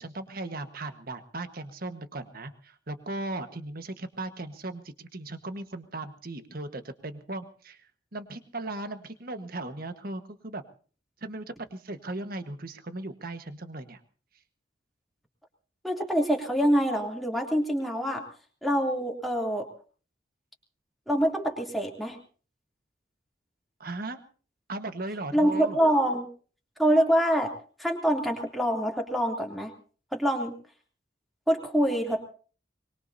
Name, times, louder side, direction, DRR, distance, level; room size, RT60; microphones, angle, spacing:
voice 1, 0.0-10.6 11.2-11.4 11.7-14.0 23.8-24.2 24.7-25.8, right 2 dB, 50° right, 8 dB, 1.4 m, -37 dB
voice 2, 15.8-18.2 18.6-19.7 21.1-22.2 25.3-26.3 26.8-27.5 27.8-29.7 30.1-30.6 31.5-32.2, equal, ahead, 1 dB, 3.0 m, -25 dB
24.0 x 21.5 x 2.8 m, 0.40 s
head